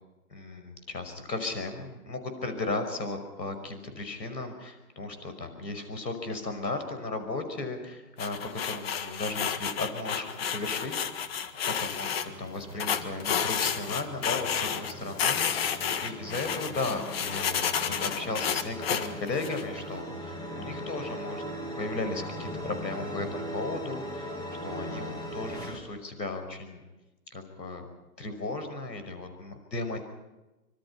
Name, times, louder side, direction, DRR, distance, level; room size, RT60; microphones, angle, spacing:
voice 1, 0.3-11.1 11.7-24.3 24.6-26.8 27.3-27.8 28.2-30.0, left 3 dB, 85° left, 8 dB, 5.8 m, -35 dB
sound 1, 8.2-12.3 12.8-14.9 15.2-19.6, left 8 dB, 35° left, 1.6 m, -30 dB
sound 2, 11.2-25.8, equal, 10° left, 2.1 m, -40 dB
25.5 x 24.0 x 5.9 m, 1.1 s
hypercardioid pair, 145°, 50 cm